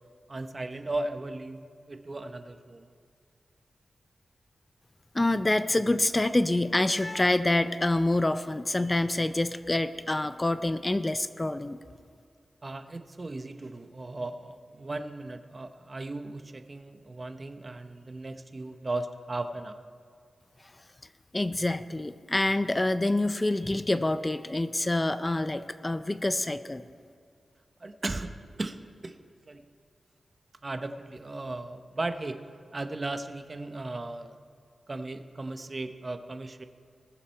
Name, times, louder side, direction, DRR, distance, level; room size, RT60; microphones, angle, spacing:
voice 1, 0.3-2.8 12.6-19.8 27.8-29.2 29.5-29.7 30.6-32.4 32.7-34.4 34.9-36.6, right 2 dB, 35° right, 8 dB, 0.7 m, -36 dB
voice 2, 5.1-11.8 21.3-26.8, left 2 dB, 20° left, 12 dB, 0.4 m, -26 dB
20.0 x 7.2 x 4.4 m, 2.2 s
wide cardioid pair, 95°, 0 cm